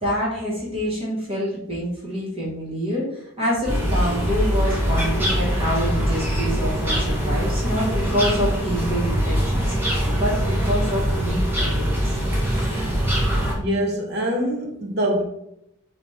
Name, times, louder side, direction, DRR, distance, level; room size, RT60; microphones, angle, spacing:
voice 1, 0.0-12.2, equal, 25° right, -6 dB, 1.1 m, -27 dB
sound 1, 3.7-13.5, equal, 10° right, 0.6 m, -22 dB
voice 2, 13.6-15.2, equal, 50° right, 1 dB, 0.8 m, -24 dB
4.1 x 2.9 x 3.2 m, 0.81 s
head